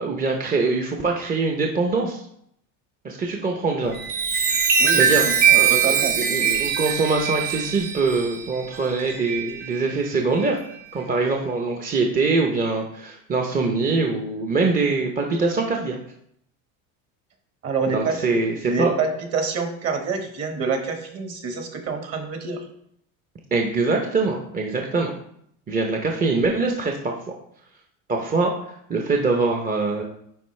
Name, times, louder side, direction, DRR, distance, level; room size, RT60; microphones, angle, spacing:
voice 1, 0.0-2.2 3.0-3.9 5.0-5.3 5.5-5.7 6.0-10.6 10.9-16.0 17.9-18.9 23.5-25.1 25.7-27.2 28.1-30.0, right 3 dB, 20° right, 2 dB, 0.7 m, -23 dB
Chime, 3.8-9.8 10.4-10.7, right 7 dB, 80° right, 1.6 m, -22 dB
voice 2, 4.8-6.2 17.6-22.7, right 4 dB, 40° right, 5 dB, 1.3 m, -27 dB
10.0 x 4.0 x 3.2 m, 0.71 s
supercardioid pair, 120°, 38 cm